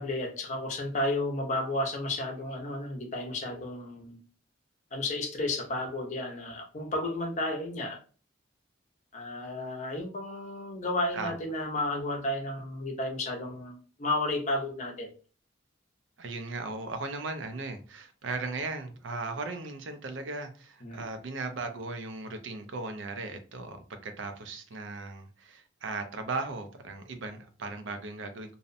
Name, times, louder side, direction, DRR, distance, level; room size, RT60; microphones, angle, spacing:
voice 1, 0.0-4.2 4.9-8.0 9.1-15.1 20.8-21.0, left 2 dB, 40° left, 1 dB, 0.6 m, -32 dB
voice 2, 16.2-28.5, right 3 dB, 75° right, 7 dB, 0.5 m, -37 dB
2.6 x 2.0 x 2.5 m, 0.38 s
head